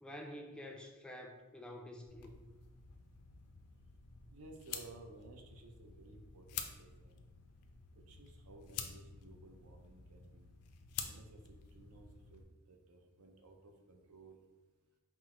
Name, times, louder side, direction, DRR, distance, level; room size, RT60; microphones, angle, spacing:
voice 1, 0.0-2.4, left 1 dB, 5° left, 2 dB, 0.4 m, -49 dB
sound 1, 2.1-12.4, left 7 dB, 85° left, 0.4 m, -49 dB
voice 2, 4.3-7.3 7.9-10.6 11.0-14.4, right 2 dB, 75° right, 4 dB, 0.6 m, -57 dB
4.4 x 2.0 x 4.2 m, 1.2 s
head